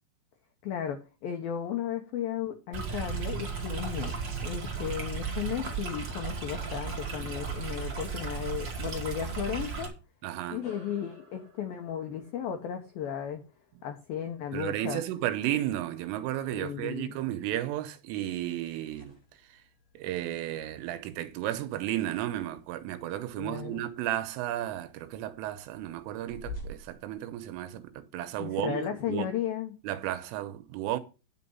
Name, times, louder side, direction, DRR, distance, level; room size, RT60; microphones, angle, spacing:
voice 1, 0.6-9.9 10.5-13.4 13.8-15.0 16.5-17.2 23.4-23.8 28.4-29.8, left 9 dB, 90° left, 2.0 m, -35 dB
Stream, 2.7-9.9, right 6 dB, 45° right, 1.5 m, -35 dB
voice 2, 10.2-10.6 14.5-19.2 20.0-29.3 29.8-31.0, right 13 dB, 80° right, 3.4 m, -33 dB
sound 1, 10.6-15.5, left 4 dB, 60° left, 7.9 m, -56 dB
sound 2, 18.8-28.0, left 1 dB, 40° left, 7.0 m, -50 dB
10.0 x 6.7 x 5.5 m
omnidirectional pair, 5.8 m